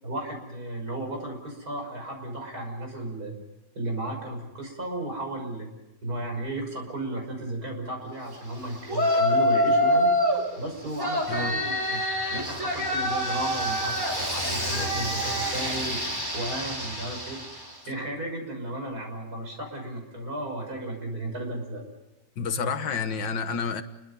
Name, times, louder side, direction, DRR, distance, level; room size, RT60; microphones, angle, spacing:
voice 1, 0.0-3.4 3.7-5.7 6.0-10.1 10.6-12.0 12.3-16.0 16.3-21.8, right 1 dB, 55° right, 2 dB, 6.5 m, -34 dB
Yell, 8.9-10.4 11.0-17.7, equal, 10° right, 3.9 m, -26 dB
voice 2, 22.4-23.8, left 5 dB, 80° left, 9 dB, 2.0 m, -29 dB
29.5 x 23.0 x 5.4 m, 1.0 s
omnidirectional pair, 2.0 m